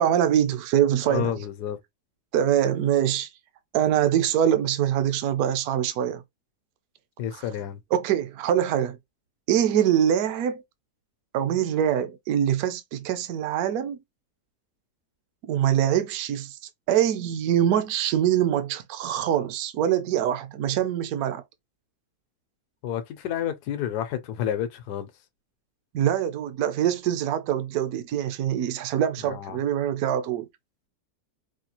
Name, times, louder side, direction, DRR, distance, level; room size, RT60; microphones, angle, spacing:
voice 1, 0.0-1.3 2.3-3.3 3.7-6.2 7.4-7.5 7.9-9.0 9.5-10.6 11.3-14.0 15.4-16.6 16.9-21.4 25.9-30.5, right 10 dB, 70° right, 1.0 m, -24 dB
voice 2, 1.0-1.8 7.2-7.8 22.8-25.1 29.2-29.6, left 10 dB, 80° left, 1.2 m, -30 dB
5.0 x 2.3 x 2.9 m
omnidirectional pair, 1.7 m